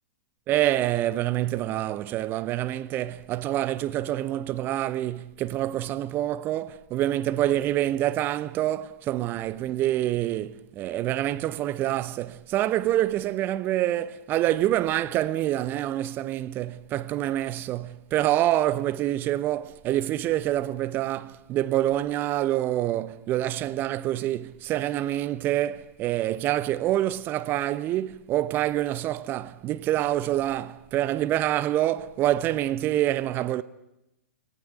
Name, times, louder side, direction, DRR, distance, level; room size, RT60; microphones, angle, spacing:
voice 1, 0.5-33.6, right 13 dB, 25° right, 0.9 m, -26 dB
24.5 x 19.0 x 9.5 m
figure-of-eight pair, 110°, 8 cm